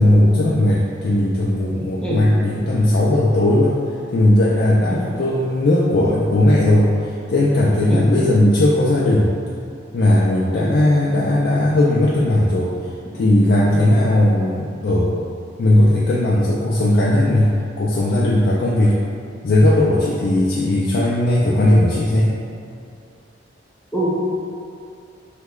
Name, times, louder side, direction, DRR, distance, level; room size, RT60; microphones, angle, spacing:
voice 1, 0.0-3.8 4.1-9.3 9.9-12.7 13.1-15.3 15.6-19.0 19.4-22.4, left 1 dB, 55° left, -6 dB, 0.3 m, -17 dB
voice 2, 2.0-2.2 4.9-5.0 7.9-8.0 10.5-10.7 13.7-13.8 23.9-24.1, right 1 dB, 5° left, -7 dB, 0.6 m, -24 dB
3.0 x 2.2 x 3.6 m, 2.4 s
head